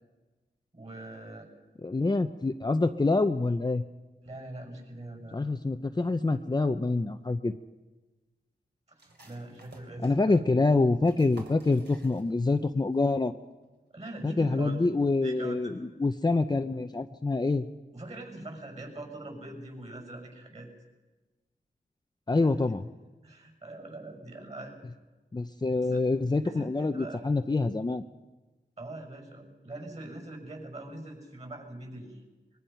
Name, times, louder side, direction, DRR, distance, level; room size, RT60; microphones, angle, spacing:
voice 1, 0.7-1.5 4.2-5.4 8.9-10.4 13.9-14.9 15.2-15.9 17.9-20.7 22.4-22.5 23.2-24.8 25.8-26.0 26.4-27.2 28.8-32.2, right 1 dB, 35° right, 4 dB, 6.3 m, -43 dB
voice 2, 1.8-3.8 5.3-7.6 10.0-13.3 14.2-17.7 22.3-22.8 25.3-28.0, left 3 dB, 20° left, 7 dB, 0.6 m, -26 dB
dresser rattling, 9.0-12.6 12.9-13.0 13.4-13.9, right 2 dB, 65° right, 3.8 m, -52 dB
23.5 x 22.0 x 5.7 m, 1.2 s
wide cardioid pair, 95°, 19 cm